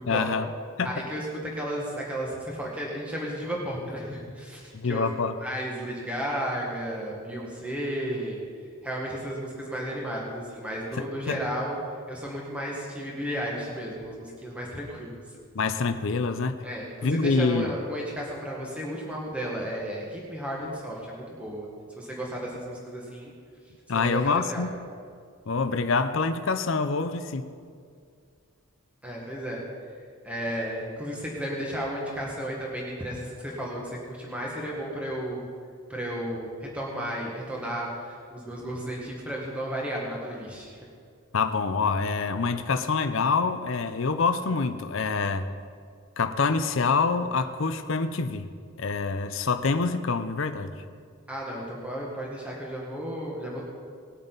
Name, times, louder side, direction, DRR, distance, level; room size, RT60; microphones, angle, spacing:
voice 1, 0.0-0.5 0.8-1.1 4.7-5.3 11.0-11.4 15.5-16.6 17.0-17.7 23.9-24.7 25.5-27.5 41.3-45.5 46.2-48.5 48.8-50.8, left 4 dB, 60° left, 9 dB, 0.6 m, -26 dB
voice 2, 0.8-5.1 5.4-8.4 8.8-11.8 12.1-15.2 16.6-21.7 22.0-23.3 23.9-24.7 29.0-29.6 30.2-35.4 35.9-40.8 51.3-53.6, equal, 5° right, -3 dB, 1.7 m, -33 dB
19.5 x 9.0 x 4.0 m, 2.2 s
head